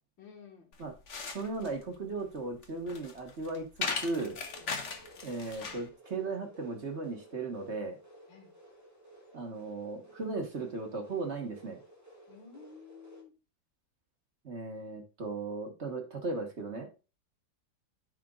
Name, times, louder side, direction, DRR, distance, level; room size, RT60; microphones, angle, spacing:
voice 1, 0.2-0.7 4.6-4.7 8.3-8.5 12.3-13.3, left 6 dB, 85° left, 6 dB, 2.4 m, -52 dB
sound 1, 0.7-5.9, left 4 dB, 45° left, 1.3 m, -39 dB
voice 2, 1.3-4.4 5.2-8.0 9.3-11.8 14.4-16.9, right 3 dB, 40° right, 4 dB, 1.6 m, -37 dB
sound 2, 4.1-13.2, right 1 dB, 10° right, 1.8 m, -56 dB
13.5 x 5.0 x 2.4 m, 0.30 s
omnidirectional pair, 2.0 m